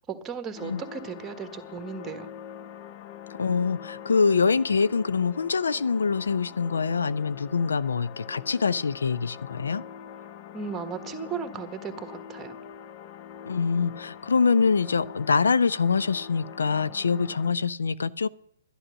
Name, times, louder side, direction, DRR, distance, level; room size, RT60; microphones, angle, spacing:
voice 1, 0.1-2.3 10.5-12.6, right 6 dB, 15° right, 9 dB, 1.5 m, -36 dB
sound 1, 0.5-17.5, left 8 dB, 35° left, 0.7 m, -43 dB
voice 2, 3.4-9.8 13.5-18.3, left 5 dB, 75° left, 16 dB, 0.4 m, -24 dB
11.0 x 11.0 x 6.3 m, 0.70 s
figure-of-eight pair, 125°, 0 cm